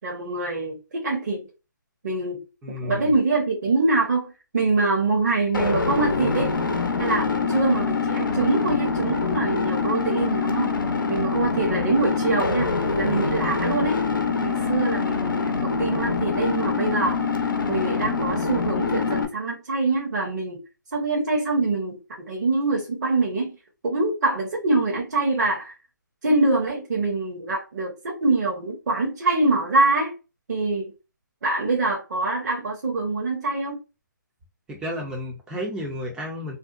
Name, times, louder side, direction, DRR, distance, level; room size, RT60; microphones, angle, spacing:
voice 1, 0.0-1.5 2.0-2.4 2.8-6.5 7.0-10.7 11.1-14.0 14.4-17.2 17.7-20.6 20.9-23.6 23.8-25.7 26.2-30.1 30.5-30.9 31.4-33.8, right 3 dB, 55° right, 1.0 m, -24 dB
voice 2, 2.6-3.1 34.7-36.6, left 1 dB, 5° right, 0.4 m, -32 dB
sound 1, 5.5-19.3, left 4 dB, 85° left, 0.6 m, -25 dB
2.6 x 2.1 x 2.3 m
hypercardioid pair, 155°, 11 cm